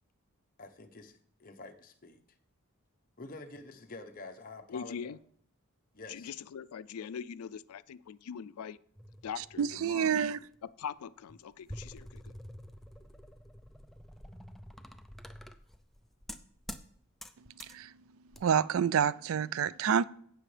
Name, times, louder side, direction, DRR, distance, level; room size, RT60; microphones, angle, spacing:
voice 1, 0.6-2.2 3.2-5.1 5.9-6.3, left 2 dB, 40° left, 0.9 m, -48 dB
voice 2, 4.7-5.2 6.1-8.8 9.2-10.2 10.6-12.3, left 7 dB, 90° left, 0.4 m, -42 dB
sound 1, 9.0-10.6 11.3-16.9 17.2-17.8 18.3-18.4, equal, ahead, 0.4 m, -48 dB
voice 3, 9.6-10.4 17.7-17.9 18.4-20.0, right 8 dB, 70° right, 0.4 m, -28 dB
16.5 x 6.1 x 3.3 m
head